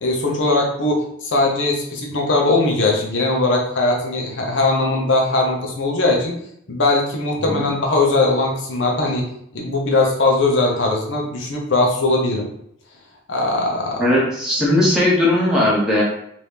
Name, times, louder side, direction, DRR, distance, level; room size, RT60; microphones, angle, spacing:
voice 1, 0.0-6.3 6.7-9.3 9.5-12.5 13.3-14.1, left 2 dB, 75° left, 0 dB, 0.7 m, -20 dB
voice 2, 14.0-16.0, left 1 dB, 5° right, -7 dB, 0.9 m, -17 dB
3.0 x 2.6 x 3.4 m, 0.72 s
head